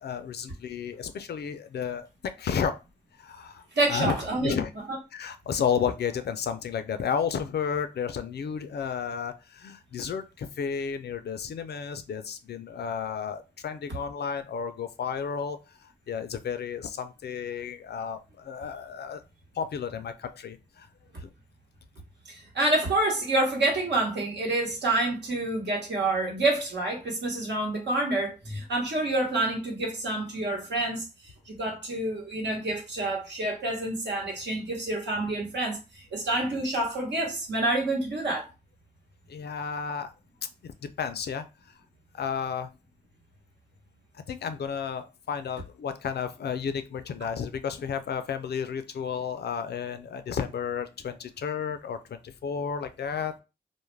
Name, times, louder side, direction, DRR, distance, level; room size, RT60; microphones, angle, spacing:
voice 1, 0.0-2.8 3.2-3.6 3.9-4.7 5.1-19.2 19.5-20.9 21.2-21.3 39.3-40.1 40.6-41.7 42.1-42.7 44.1-53.3, left 7 dB, 65° left, 0.4 m, -32 dB
voice 2, 3.7-4.5 22.3-31.0 31.5-38.5, right 2 dB, 75° right, 1.0 m, -28 dB
2.3 x 2.1 x 3.2 m
cardioid pair, 60°, 18 cm